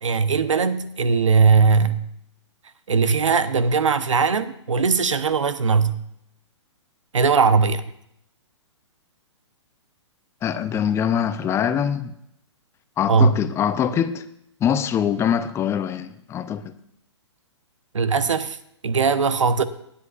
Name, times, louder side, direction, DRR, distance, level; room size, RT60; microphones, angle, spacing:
voice 1, 0.0-2.1 2.9-6.0 7.1-7.8 13.1-13.4 17.9-18.6 18.8-19.6, right 5 dB, 85° right, 0.9 m, -19 dB
voice 2, 10.4-12.1 13.0-14.2 14.6-16.7, left 8 dB, 15° left, 0.6 m, -23 dB
18.5 x 9.8 x 2.5 m
hypercardioid pair, 130°, 16 cm